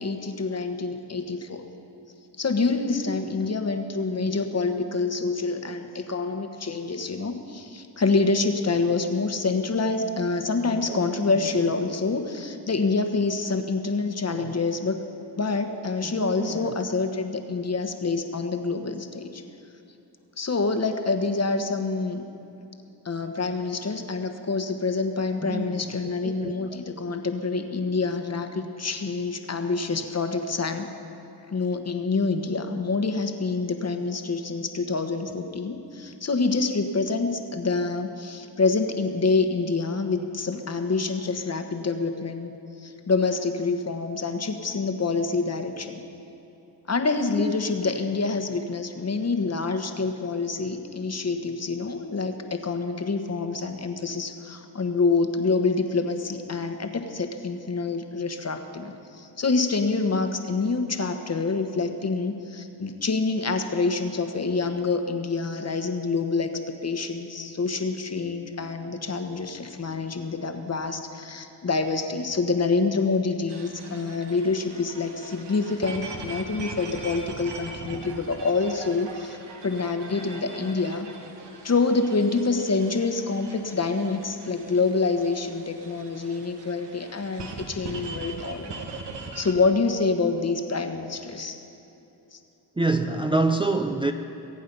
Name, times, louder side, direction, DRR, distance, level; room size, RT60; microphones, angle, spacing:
voice 1, 0.0-1.7 2.4-15.0 15.4-19.4 20.4-22.2 23.0-30.9 31.5-42.5 42.8-46.0 46.9-79.4 79.6-81.1 81.6-88.7 89.3-91.6 92.3-92.4, left 4 dB, 35° left, 7 dB, 1.3 m, -26 dB
voice 2, 10.6-11.9 14.2-14.5 16.0-16.7 25.4-26.0 26.2-26.5 29.9-30.1 92.8-94.1, right 3 dB, 10° right, 4 dB, 0.6 m, -28 dB
sound 1, 73.5-89.5, right 3 dB, 70° right, 1.7 m, -41 dB
22.5 x 8.6 x 5.5 m, 3.0 s
cardioid pair, 80°, 43 cm